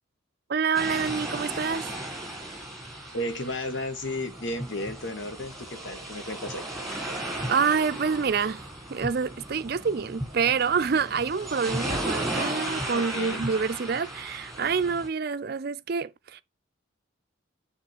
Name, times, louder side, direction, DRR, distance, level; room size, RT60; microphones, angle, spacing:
voice 1, 0.5-2.0 7.5-16.4, right 5 dB, 50° right, 0.4 m, -27 dB
sound 1, 0.7-15.1, right 1 dB, ahead, 2.0 m, -35 dB
voice 2, 3.1-6.7 12.9-13.5, left 1 dB, 70° left, 1.3 m, -33 dB
6.9 x 3.7 x 4.9 m
head